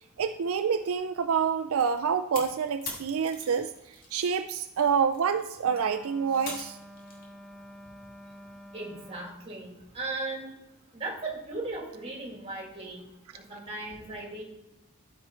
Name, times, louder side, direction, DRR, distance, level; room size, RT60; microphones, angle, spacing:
voice 1, 0.2-6.8, right 6 dB, 70° right, 9 dB, 0.4 m, -27 dB
sound 1, 1.8-4.4 4.7-7.3, left 3 dB, 40° left, 2.1 m, -42 dB
Wind instrument woodwind instrument, 5.6-9.5, equal, ahead, 0.6 m, -49 dB
voice 2, 8.7-10.5 10.9-13.0 13.3-14.4, right 2 dB, 25° right, 0 dB, 2.2 m, -37 dB
13.0 x 4.4 x 4.4 m, 0.96 s
head